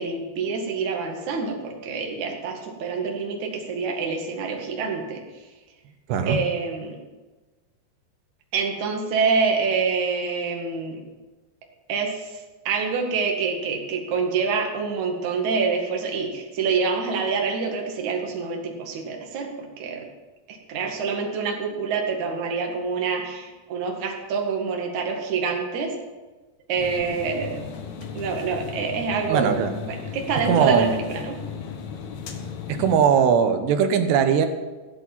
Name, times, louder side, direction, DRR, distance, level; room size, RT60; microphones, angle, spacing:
voice 1, 0.0-5.2 6.3-7.0 8.5-11.0 11.9-19.5 19.8-20.1 20.5-25.9 26.7-27.6 28.1-29.5 29.9-31.4 32.8-33.0, right 5 dB, 50° right, 1 dB, 2.9 m, -26 dB
voice 2, 6.1-6.4 29.3-29.8 30.5-30.9 32.7-34.5, right 7 dB, 75° right, 8 dB, 3.1 m, -20 dB
sound 1, 26.8-33.0, left 7 dB, 75° left, 1.7 m, -36 dB
15.5 x 8.4 x 7.3 m, 1.2 s
omnidirectional pair, 5.1 m